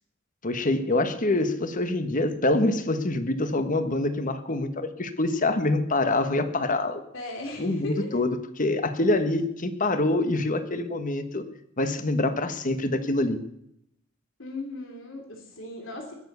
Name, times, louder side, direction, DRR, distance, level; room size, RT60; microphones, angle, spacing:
voice 1, 0.4-7.0 7.6-11.4 11.8-13.4, left 2 dB, 40° left, 9 dB, 1.4 m, -25 dB
voice 2, 7.1-8.1 14.4-16.1, left 2 dB, 70° left, 1 dB, 3.2 m, -37 dB
20.5 x 7.2 x 6.8 m, 0.76 s
head